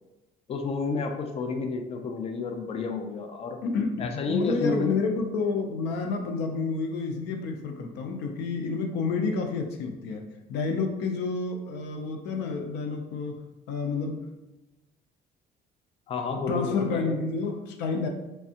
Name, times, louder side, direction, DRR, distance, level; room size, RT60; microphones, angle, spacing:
voice 1, 0.5-3.6 4.0-4.9 16.1-17.2, left 4 dB, 35° left, 5 dB, 0.4 m, -30 dB
voice 2, 3.6-10.2 10.5-14.2 16.5-18.1, left 4 dB, 90° left, 4 dB, 0.5 m, -29 dB
3.4 x 3.2 x 2.8 m, 1.0 s
cardioid pair, 110°, 17 cm